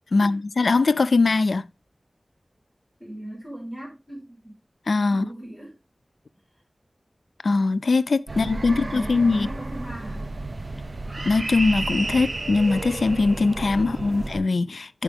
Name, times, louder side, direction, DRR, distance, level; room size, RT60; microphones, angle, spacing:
voice 1, 0.1-1.7 4.9-5.3 7.4-9.5 11.2-15.0, left 3 dB, 85° left, 0.3 m, -21 dB
voice 2, 3.0-4.6 5.1-5.8 8.3-8.4 8.6-10.3, right 1 dB, 15° right, 4.8 m, -39 dB
sound 1, 8.3-14.4, right 2 dB, 50° right, 0.5 m, -32 dB
9.9 x 4.4 x 3.4 m
wide cardioid pair, 60°, 0 cm